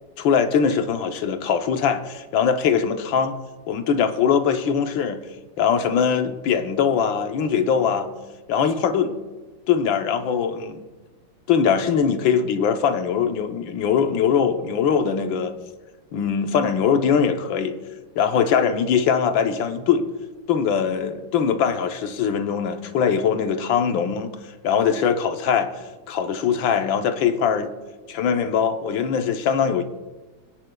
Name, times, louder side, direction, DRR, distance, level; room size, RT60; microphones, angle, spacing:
voice 1, 0.2-3.4 3.7-5.2 5.6-8.1 8.5-9.1 9.7-10.8 11.5-15.5 16.1-17.7 18.1-20.0 20.5-24.3 24.6-25.7 26.1-27.7 28.1-29.8, left 7 dB, 90° left, 7 dB, 1.6 m, -21 dB
25.0 x 9.8 x 2.3 m, 1.2 s
omnidirectional pair, 2.0 m